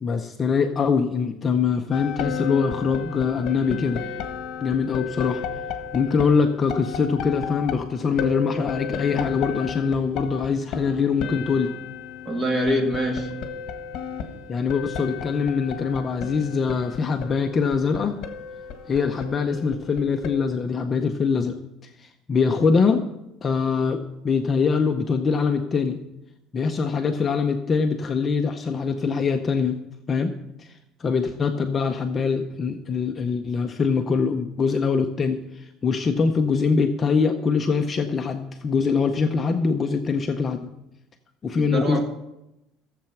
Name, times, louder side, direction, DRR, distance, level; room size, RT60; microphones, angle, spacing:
voice 1, 0.0-4.0 4.6-5.4 5.9-11.7 14.5-18.2 18.9-21.6 22.0-23.1 23.4-26.0 26.5-29.8 30.1-30.3 30.6-30.7 31.0-40.6 41.4-42.0, left 5 dB, 20° left, 5 dB, 0.6 m, -23 dB
sound 1, 1.9-20.5, left 7 dB, 50° left, 1.5 m, -34 dB
voice 2, 12.3-13.4 41.5-42.0, equal, 15° right, 2 dB, 1.9 m, -25 dB
15.0 x 7.6 x 5.8 m, 0.91 s
cardioid pair, 170°, 0 cm